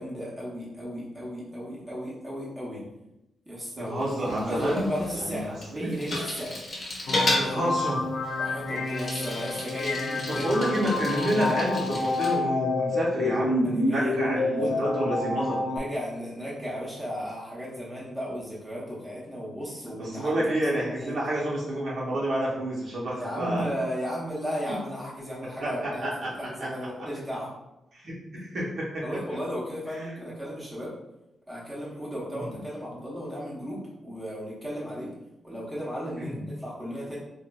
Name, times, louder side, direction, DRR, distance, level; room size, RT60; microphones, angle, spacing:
voice 1, 0.0-2.9 3.5-6.6 7.4-7.9 8.4-10.5 13.6-14.8 15.5-20.3 21.0-21.2 23.2-26.1 26.4-27.5 29.0-30.9 31.5-35.1 35.4-37.2, equal, 5° right, -7 dB, 0.8 m, -35 dB
voice 2, 3.8-4.8 5.1-5.4 5.7-5.9 7.3-8.0 10.3-15.6 20.0-23.7 25.6-26.3 26.6-26.7 27.9-29.0 32.3-32.5 36.2-36.4, right 1 dB, 50° right, -5 dB, 0.8 m, -29 dB
Bicycle, 4.0-12.4, left 1 dB, 35° left, 0.8 m, -34 dB
sound 1, 7.1-15.8, left 2 dB, 70° left, 0.4 m, -28 dB
4.0 x 2.4 x 2.2 m, 0.91 s
wide cardioid pair, 175°, 0 cm